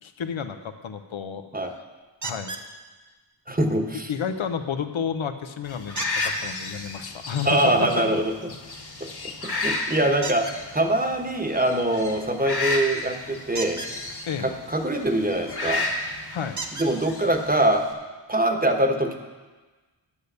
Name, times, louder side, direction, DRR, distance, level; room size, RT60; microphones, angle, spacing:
voice 1, 0.0-1.5 2.2-2.5 4.1-8.2 14.3-14.5 16.3-16.6, left 7 dB, 80° left, 8 dB, 0.9 m, -31 dB
sound 1, 2.2-2.7 6.0-6.4 10.2-10.6 13.5-13.9 15.6-15.7 16.6-16.9 17.9-18.0 18.5-18.6, right 3 dB, 40° right, 1.0 m, -33 dB
voice 2, 3.5-4.1 7.4-8.5 9.4-10.5 10.7-13.8 14.4-15.8 16.8-17.8 18.3-19.2, right 1 dB, 20° right, 4 dB, 1.2 m, -23 dB
sound 2, 5.7-17.9, left 2 dB, 55° left, 1.7 m, -33 dB
10.0 x 6.7 x 6.8 m, 1.3 s
wide cardioid pair, 65°, 46 cm